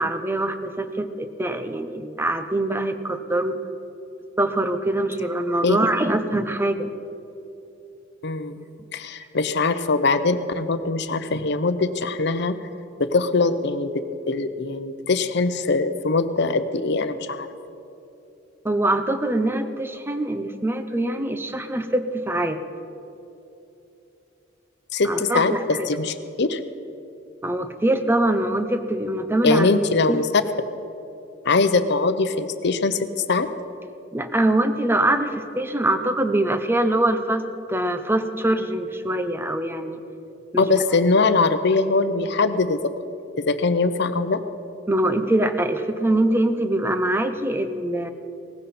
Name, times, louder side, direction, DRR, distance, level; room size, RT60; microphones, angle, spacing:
voice 1, 0.0-3.6 4.4-6.9 18.6-22.6 25.0-25.9 27.4-29.7 30.1-30.2 34.1-37.4 37.7-40.0 40.5-40.7 44.9-48.1, right 1 dB, 10° right, 8 dB, 0.8 m, -23 dB
voice 2, 8.2-8.6 8.9-12.6 13.0-17.5 24.9-26.6 29.4-30.3 31.4-33.5 40.6-42.8 43.4-44.4, left 3 dB, 60° left, 11 dB, 0.8 m, -22 dB
18.0 x 15.0 x 4.3 m, 2.8 s
head